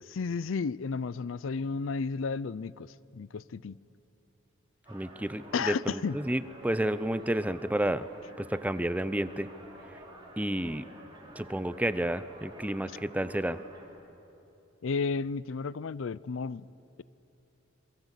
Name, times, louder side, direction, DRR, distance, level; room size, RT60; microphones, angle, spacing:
voice 1, 0.0-3.8 5.5-6.2 14.8-16.7, left 4 dB, 75° left, 20 dB, 0.5 m, -33 dB
sound 1, 4.8-13.9, right 1 dB, 25° right, 4.5 m, -50 dB
voice 2, 4.9-8.1 8.4-9.5 10.4-10.9 11.4-13.6, right 1 dB, 5° right, 13 dB, 0.6 m, -31 dB
27.0 x 23.0 x 8.2 m, 2.9 s
head